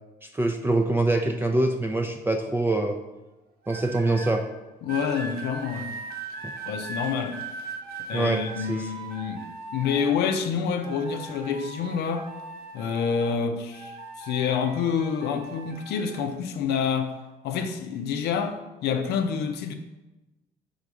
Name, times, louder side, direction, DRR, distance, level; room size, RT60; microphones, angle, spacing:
voice 1, 0.2-3.0 3.7-4.4 8.1-8.9, right 2 dB, 10° right, 0.4 m, -24 dB
sound 1, 3.6-4.4 4.9-10.4 10.8-13.4 13.7-16.2 17.0-17.3, right 3 dB, 65° right, 1.0 m, -39 dB
voice 2, 4.8-5.9 6.6-7.4 8.1-12.3 12.7-17.1 17.4-19.7, left 6 dB, 75° left, 0.6 m, -28 dB
5.4 x 4.0 x 4.8 m
cardioid pair, 110°, 17 cm